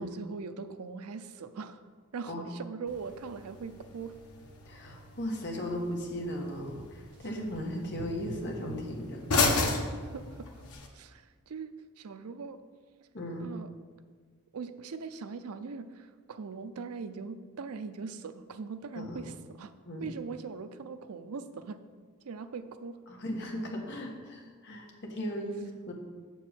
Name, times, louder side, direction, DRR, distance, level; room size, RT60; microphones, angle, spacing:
voice 1, 0.0-1.8 2.1-4.2 9.7-10.5 10.9-12.6 13.4-13.7 14.5-19.7 20.0-21.8 22.2-23.0, right 5 dB, 85° right, 11 dB, 0.5 m, -41 dB
sound 1, 2.9-10.9, left 3 dB, 85° left, 1.2 m, -35 dB
voice 2, 4.6-9.2 13.1-13.5 18.9-19.2 19.8-20.1 23.1-25.9, equal, 55° left, 0 dB, 1.5 m, -37 dB
7.5 x 4.6 x 7.2 m, 1.6 s
head